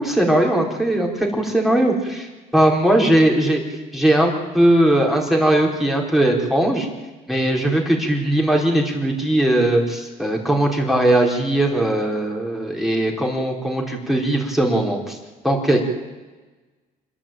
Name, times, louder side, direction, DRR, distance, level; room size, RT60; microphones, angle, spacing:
voice 1, 0.0-2.3 2.5-3.6 3.9-6.9 7.3-15.2 15.4-15.8, right 1 dB, ahead, 0 dB, 4.5 m, -19 dB
27.0 x 11.0 x 9.0 m, 1.2 s
cardioid pair, 110°, 17 cm